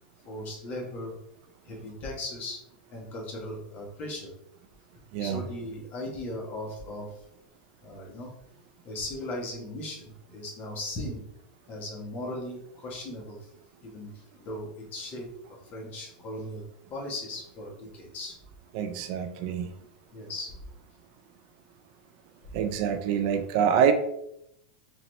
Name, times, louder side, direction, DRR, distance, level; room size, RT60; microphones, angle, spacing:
voice 1, 0.2-1.1 1.6-2.6 2.9-4.3 5.2-7.1 7.8-8.3 8.8-11.2 11.7-13.4 13.8-14.1 14.4-15.3 15.7-16.6 16.9-18.3 20.1-20.5, left 1 dB, 35° left, -1 dB, 1.4 m, -37 dB
voice 2, 18.7-19.7 22.5-23.9, right 8 dB, 55° right, 7 dB, 0.4 m, -25 dB
4.2 x 2.6 x 3.2 m, 0.79 s
supercardioid pair, 125°, 5 cm